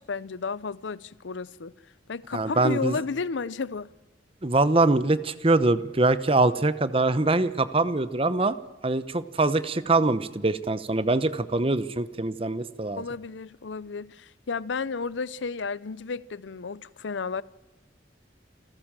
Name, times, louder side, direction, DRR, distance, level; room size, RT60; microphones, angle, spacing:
voice 1, 0.0-1.7 2.1-3.9 13.0-17.4, left 4 dB, 80° left, 0.6 m, -32 dB
voice 2, 2.3-3.0 4.4-8.6 8.8-13.0, right 2 dB, 30° right, 0.9 m, -23 dB
28.0 x 13.5 x 7.5 m
head